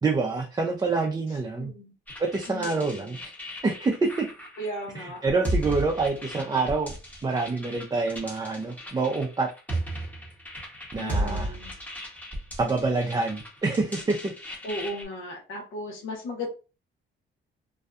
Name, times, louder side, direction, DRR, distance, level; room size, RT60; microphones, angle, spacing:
voice 1, 0.0-1.7 2.2-3.2 3.6-4.3 4.9-6.9 7.2-9.5 10.9-11.5 12.6-14.3, right 3 dB, 20° right, 0 dB, 0.4 m, -26 dB
voice 2, 1.6-1.9 2.5-3.2 4.6-5.2 11.0-11.7 14.6-16.5, left 1 dB, 80° left, -1 dB, 0.9 m, -36 dB
sound 1, 2.1-15.0, right 1 dB, 10° left, 0.9 m, -35 dB
2.6 x 2.2 x 2.3 m, 0.32 s
cardioid pair, 90°, 20 cm